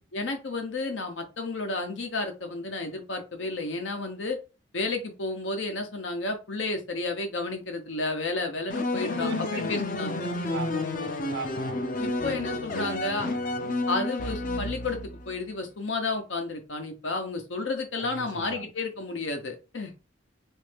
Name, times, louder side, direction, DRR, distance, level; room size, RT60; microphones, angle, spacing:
voice 1, 0.1-4.4 4.7-10.5 12.0-13.3 13.9-19.9, left 3 dB, 80° left, 0.9 m, -32 dB
sound 1, 8.7-15.3, left 2 dB, 45° left, 0.5 m, -30 dB
voice 2, 9.1-9.8 10.5-10.9 11.3-11.9 13.0-13.2 18.0-18.7, right 5 dB, 70° right, 0.4 m, -40 dB
3.1 x 2.6 x 3.3 m
head